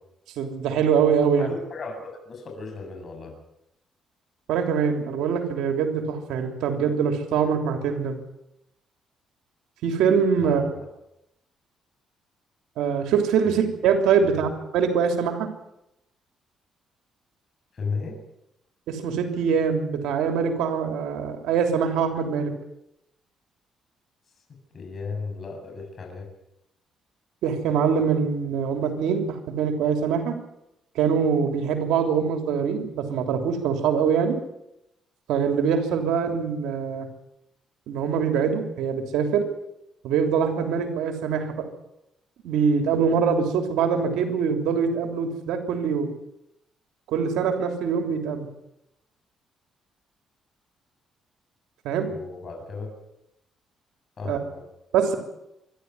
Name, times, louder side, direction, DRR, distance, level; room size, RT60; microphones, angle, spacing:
voice 1, 0.4-1.5 4.5-8.2 9.8-10.6 12.8-14.5 14.7-15.5 18.9-22.5 27.4-30.4 30.9-34.4 35.3-37.1 37.9-39.4 40.0-41.6 42.4-46.1 47.1-48.5 51.8-52.1 54.2-54.4 54.9-55.2, right 6 dB, 90° right, 5 dB, 3.2 m, -23 dB
voice 2, 1.4-3.3 10.4-10.9 13.4-13.6 14.2-14.5 17.7-18.2 24.5-26.3 52.1-52.9 54.2-54.6, left 4 dB, 45° left, 2 dB, 7.9 m, -35 dB
25.5 x 12.0 x 9.6 m, 0.86 s
cardioid pair, 90°, 0 cm